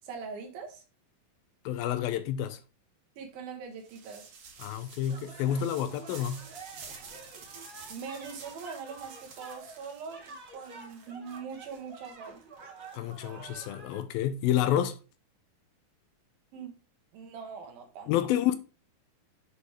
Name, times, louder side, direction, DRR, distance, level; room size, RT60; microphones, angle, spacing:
voice 1, 0.0-0.8 3.2-4.3 7.9-12.4 16.5-16.7 17.1-18.1, right 5 dB, 80° right, 3.3 m, -42 dB
voice 2, 1.7-2.6 4.6-6.5 12.9-15.0 18.1-18.5, left 11 dB, 85° left, 2.6 m, -29 dB
sound 1, 3.8-13.7, right 5 dB, 55° right, 2.3 m, -50 dB
sound 2, 5.1-14.0, right 3 dB, 40° right, 1.2 m, -49 dB
8.2 x 5.2 x 3.2 m
omnidirectional pair, 4.1 m